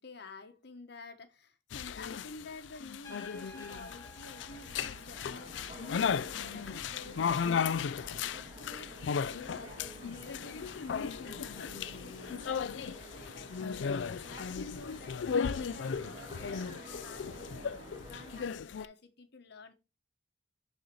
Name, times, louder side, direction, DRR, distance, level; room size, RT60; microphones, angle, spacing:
voice 1, 0.0-19.7, left 3 dB, 65° left, 1.1 m, -51 dB
sound 1, 1.7-18.8, left 6 dB, 85° left, 0.4 m, -36 dB
Trumpet, 3.0-5.7, left 2 dB, 20° left, 1.6 m, -53 dB
Train, 3.0-18.4, right 1 dB, 25° right, 3.1 m, -50 dB
10.0 x 4.2 x 3.0 m
head